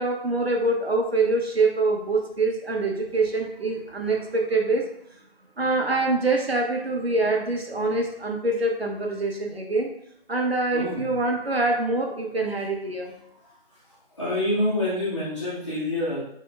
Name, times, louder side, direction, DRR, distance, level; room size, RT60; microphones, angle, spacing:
voice 1, 0.0-4.9 5.6-9.9 10.3-13.1, right 2 dB, 80° right, 1 dB, 0.9 m, -25 dB
voice 2, 10.7-11.1 13.4-13.5 14.1-16.2, left 1 dB, 30° left, -11 dB, 1.0 m, -27 dB
4.2 x 2.8 x 2.3 m, 0.71 s
figure-of-eight pair, 165°, 31 cm